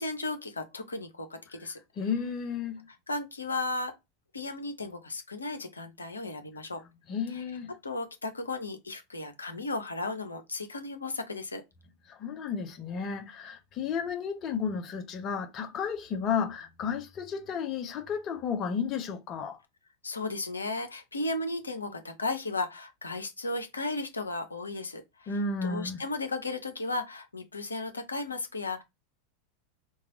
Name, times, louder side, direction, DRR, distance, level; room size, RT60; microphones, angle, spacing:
voice 1, 0.0-1.8 3.1-3.9 4.3-6.8 7.3-7.4 7.8-11.6 20.0-25.3 25.6-28.8, left 2 dB, 75° left, 0.7 m, -35 dB
voice 2, 2.0-2.9 7.1-7.7 12.1-19.6 25.3-26.0, left 6 dB, 35° left, 0.8 m, -33 dB
3.1 x 2.3 x 3.6 m
figure-of-eight pair, 85°, 0 cm